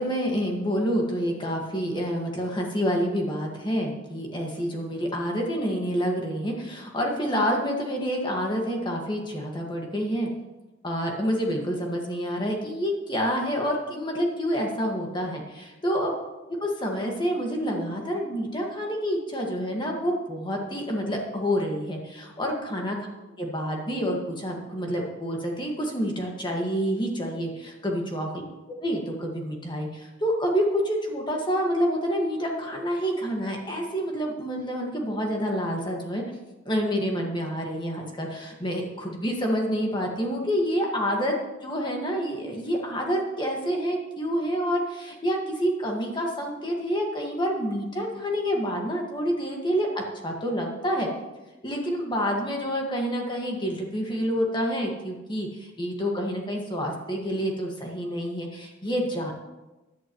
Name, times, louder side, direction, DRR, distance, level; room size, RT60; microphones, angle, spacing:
voice 1, 0.0-10.3 10.8-16.1 16.6-23.0 23.4-28.3 28.8-36.2 36.7-41.3 41.6-51.1 51.6-59.3, equal, 25° left, 0 dB, 1.7 m, -28 dB
16.0 x 11.0 x 3.1 m, 1.1 s
head